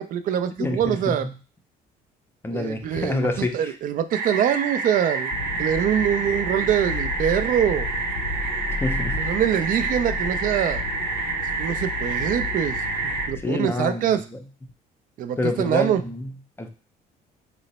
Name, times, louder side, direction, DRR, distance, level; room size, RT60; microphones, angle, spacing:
voice 1, 0.0-1.3 2.5-3.3 3.5-5.3 5.6-7.9 9.1-10.8 11.6-12.8 13.3-14.2 15.2-16.0, right 9 dB, 55° right, 10 dB, 0.4 m, -24 dB
voice 2, 0.6-1.3 2.4-3.8 8.7-9.2 13.4-14.4 15.4-16.3 16.6-16.7, left 2 dB, 15° left, 6 dB, 0.5 m, -27 dB
sound 1, 4.1-13.3, right 4 dB, 75° right, 0.8 m, -28 dB
sound 2, 5.3-13.4, left 5 dB, 60° left, 0.5 m, -33 dB
3.0 x 2.0 x 4.0 m, 0.35 s
cardioid pair, 110°, 17 cm